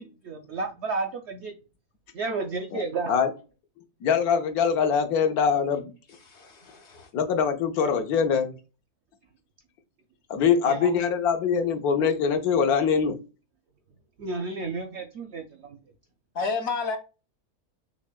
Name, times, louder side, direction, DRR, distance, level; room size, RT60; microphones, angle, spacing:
voice 1, 0.0-1.5 2.1-3.1 10.6-11.1 14.2-15.8, right 3 dB, 65° right, 0.7 m, -32 dB
voice 2, 4.0-5.9 7.1-8.5 10.3-13.1, left 6 dB, 80° left, 1.1 m, -23 dB
voice 3, 6.3-7.1 16.3-17.0, left 4 dB, 60° left, 0.8 m, -31 dB
5.9 x 2.2 x 2.2 m
omnidirectional pair, 1.6 m